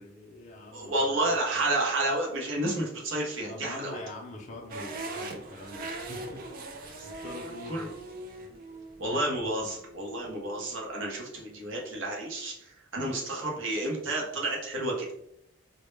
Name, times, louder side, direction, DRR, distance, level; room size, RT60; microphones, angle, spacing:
voice 1, 0.0-1.1 3.5-6.5 6.7-7.9 8.4-8.5, left 2 dB, 40° left, -2 dB, 0.4 m, -44 dB
voice 2, 0.7-4.0 7.0-7.1 7.7-7.9 9.0-15.1, right 1 dB, 80° right, -2 dB, 0.7 m, -30 dB
sound 1, 4.7-10.8, right 2 dB, 45° right, 0.4 m, -41 dB
2.1 x 2.0 x 3.0 m, 0.75 s
head